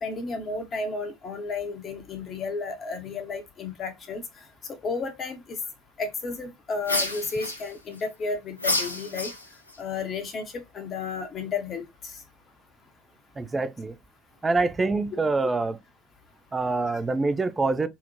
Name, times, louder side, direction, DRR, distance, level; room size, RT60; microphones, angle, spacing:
voice 1, 0.0-4.2 4.8-5.6 6.0-9.3 9.8-12.2, left 4 dB, 35° left, 0.6 m, -32 dB
sound 1, 6.8-8.0 8.6-9.8, left 2 dB, 85° left, 0.4 m, -29 dB
voice 2, 13.4-14.0 14.4-15.8 16.5-17.9, right 3 dB, 20° right, 0.3 m, -25 dB
2.7 x 2.0 x 2.8 m
figure-of-eight pair, 65°, 0 cm